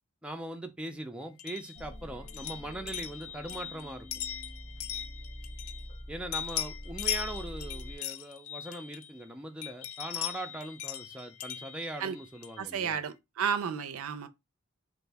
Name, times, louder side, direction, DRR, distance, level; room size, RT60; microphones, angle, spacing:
voice 1, 0.2-4.1 6.1-13.0, right 1 dB, 5° right, 0.4 m, -40 dB
sound 1, 1.4-6.0 6.3-9.2 9.6-12.7, left 10 dB, 65° left, 0.4 m, -39 dB
sound 2, 1.8-8.0, equal, 30° left, 0.7 m, -45 dB
voice 2, 12.6-14.3, right 7 dB, 65° right, 0.4 m, -32 dB
3.9 x 2.6 x 3.3 m
head